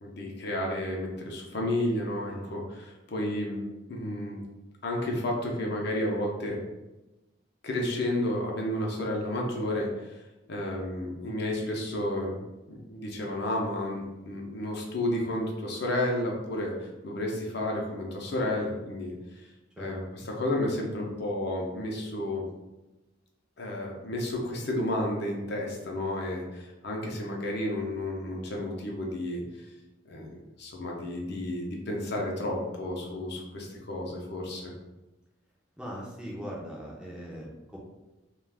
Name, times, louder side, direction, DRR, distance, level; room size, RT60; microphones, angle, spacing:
voice 1, 0.0-3.6 3.9-4.4 4.8-6.6 7.6-10.2 10.5-19.5 19.8-22.5 23.6-29.7 30.1-34.6, left 1 dB, 55° left, -1 dB, 0.6 m, -32 dB
voice 2, 35.8-37.8, equal, 5° right, -4 dB, 0.4 m, -40 dB
2.4 x 2.3 x 3.4 m, 1.0 s
head